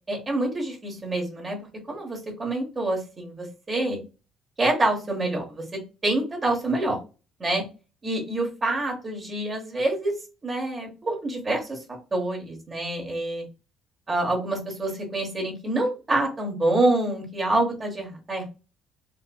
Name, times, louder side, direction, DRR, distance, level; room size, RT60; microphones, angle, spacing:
voice 1, 0.1-1.6 1.9-4.0 4.6-7.0 7.4-7.6 8.0-10.1 10.4-11.8 12.1-13.4 14.1-18.4, right 2 dB, 20° right, 1 dB, 0.9 m, -26 dB
3.8 x 2.5 x 2.2 m, 0.31 s
cardioid pair, 175°, 0 cm